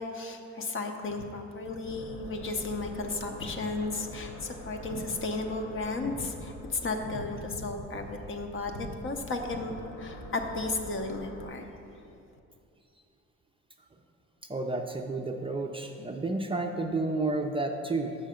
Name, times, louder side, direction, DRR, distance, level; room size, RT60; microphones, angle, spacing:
voice 1, 0.0-9.7 10.0-12.2, left 3 dB, 45° left, 4 dB, 0.8 m, -34 dB
sound 1, 1.8-11.5, left 1 dB, 70° left, 1.0 m, -45 dB
voice 2, 14.5-18.1, right 2 dB, 20° right, 2 dB, 0.4 m, -31 dB
6.5 x 5.6 x 5.0 m, 2.5 s
cardioid pair, 90°, 30 cm